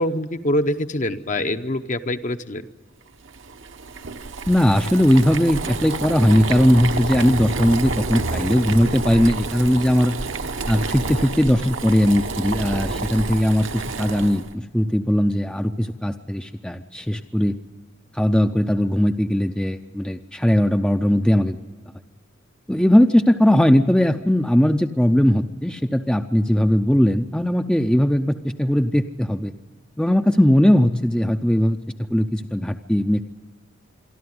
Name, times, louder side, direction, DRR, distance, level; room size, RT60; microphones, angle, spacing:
voice 1, 0.0-2.6, left 1 dB, 40° left, 9 dB, 0.8 m, -24 dB
Boiling, 3.2-14.5, right 3 dB, 65° right, 1.0 m, -29 dB
voice 2, 4.5-10.2 10.7-17.6 18.1-21.6 22.7-29.5 30.0-31.8 32.1-33.2, equal, 5° left, 7 dB, 0.5 m, -19 dB
26.0 x 12.0 x 9.5 m, 1.5 s
head